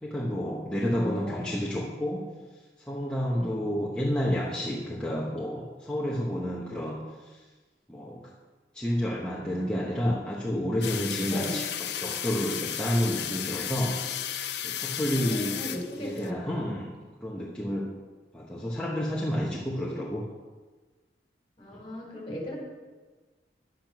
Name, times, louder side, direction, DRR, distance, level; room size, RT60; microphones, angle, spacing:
voice 1, 0.0-2.2 2.9-7.4 7.9-8.3 8.7-14.0 14.6-15.5 16.0-17.9 18.3-20.2 21.7-21.8, equal, 5° left, -6 dB, 1.2 m, -30 dB
voice 2, 0.9-1.6 3.3-3.7 11.3-11.6 15.1-16.7 21.6-22.6, equal, 30° left, -1 dB, 3.4 m, -37 dB
sound 1, 10.8-16.3, left 10 dB, 75° left, 0.7 m, -34 dB
10.5 x 8.6 x 6.0 m, 1.3 s
head